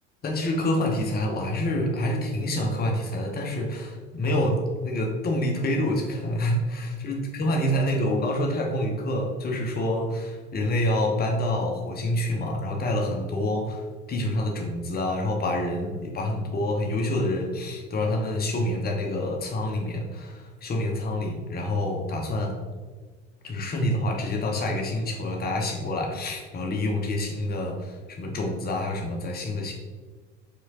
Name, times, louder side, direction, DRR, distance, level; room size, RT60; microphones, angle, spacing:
voice 1, 0.2-13.8 14.1-22.6 23.4-29.7, left 1 dB, 25° left, 1 dB, 1.0 m, -27 dB
4.7 x 3.7 x 2.9 m, 1.4 s
figure-of-eight pair, 65°, 36 cm